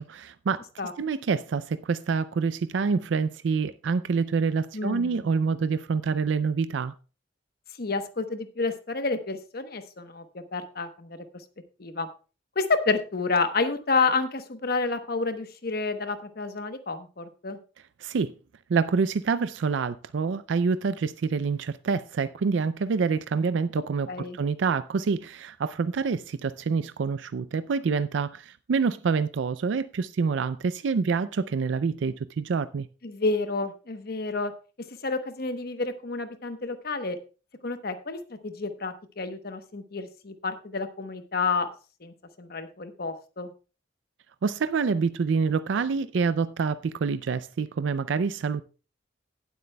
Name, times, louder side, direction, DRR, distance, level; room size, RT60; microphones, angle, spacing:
voice 1, 0.0-0.7 1.0-6.9 18.0-18.3 18.7-24.1 24.3-32.9 44.4-48.6, right 5 dB, 80° right, 0.4 m, -27 dB
voice 2, 4.7-5.2 7.8-10.2 10.5-11.2 11.8-12.1 12.6-17.6 24.1-24.4 33.0-34.5 35.0-37.2 37.6-41.7 42.0-43.5, left 4 dB, 55° left, 1.0 m, -29 dB
18.0 x 8.0 x 2.2 m
head